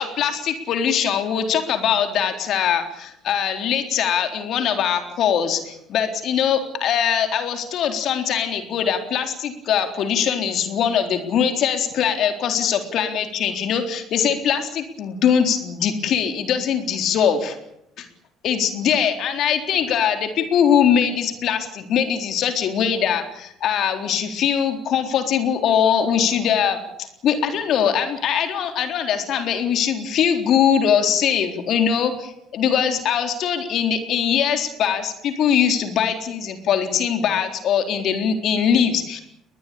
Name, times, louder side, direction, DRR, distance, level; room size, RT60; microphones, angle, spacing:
voice 1, 0.0-17.6 18.0-18.1 18.4-39.2, left 8 dB, 60° left, 6 dB, 3.8 m, -21 dB
21.0 x 20.5 x 8.7 m, 0.78 s
hypercardioid pair, 65°, 0 cm